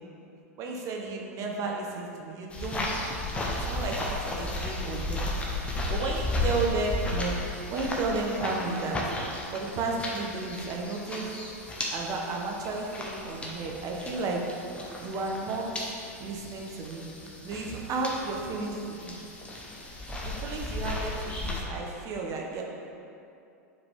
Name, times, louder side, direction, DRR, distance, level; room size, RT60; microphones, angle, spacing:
voice 1, 0.6-2.8 3.6-5.3 5.9-7.3 7.7-9.0 9.5-11.4 11.9-14.4 15.0-15.8 16.2-17.1 17.4-19.1 20.2-22.6, right 3 dB, 40° right, 0 dB, 1.3 m, -33 dB
sound 1, 2.5-21.6, left 1 dB, 15° left, 1.3 m, -34 dB
9.8 x 4.8 x 3.8 m, 2.6 s
hypercardioid pair, 105°, 8 cm